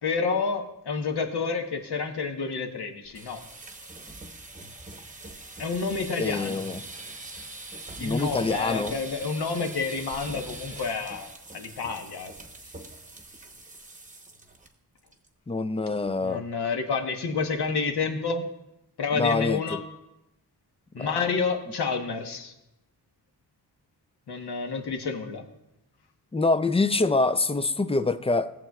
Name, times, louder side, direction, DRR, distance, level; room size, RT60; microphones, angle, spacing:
voice 1, 0.0-3.4 5.6-6.6 8.0-12.3 16.2-18.5 19.0-19.8 20.9-22.5 24.3-25.4, left 4 dB, 75° left, 5 dB, 1.1 m, -29 dB
sound 1, 3.0-14.7 15.0-15.3 15.6-15.7 16.1-16.5, right 2 dB, 20° right, 0.9 m, -43 dB
voice 2, 6.2-6.8 8.0-8.9 15.5-16.4 19.1-19.8 21.0-21.2 26.3-28.5, left 3 dB, 15° left, 12 dB, 0.3 m, -25 dB
17.5 x 7.5 x 2.3 m, 0.89 s
wide cardioid pair, 100°, 40 cm